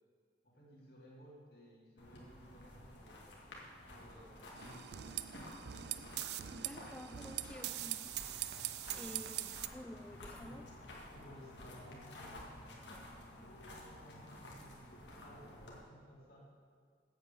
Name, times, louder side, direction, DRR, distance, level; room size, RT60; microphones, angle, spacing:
voice 1, 0.4-3.6 3.9-5.9 7.7-7.9 8.8-9.8 10.4-10.6 11.1-12.7 13.4-16.4, equal, 55° left, -5 dB, 2.7 m, -58 dB
sound 1, 2.0-15.8, left 1 dB, 90° left, 1.9 m, -53 dB
sound 2, 4.6-9.7, right 13 dB, 70° right, 0.4 m, -42 dB
voice 2, 6.5-8.2 9.0-10.6, left 1 dB, 5° left, 8 dB, 0.4 m, -51 dB
8.2 x 8.2 x 6.7 m, 2.1 s
head